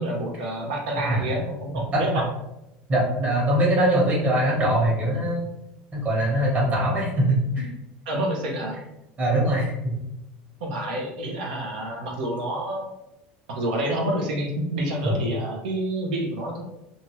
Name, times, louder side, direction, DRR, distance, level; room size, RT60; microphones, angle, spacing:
voice 1, 0.0-2.3 8.1-8.8 10.6-12.9 13.5-16.6, right 1 dB, 90° right, 0 dB, 0.8 m, -28 dB
voice 2, 1.9-2.2 2.9-5.4 5.9-7.7 9.2-10.0 15.0-15.1, right 1 dB, 30° right, -4 dB, 1.2 m, -22 dB
2.7 x 2.4 x 3.0 m, 0.89 s
supercardioid pair, 105°, 5 cm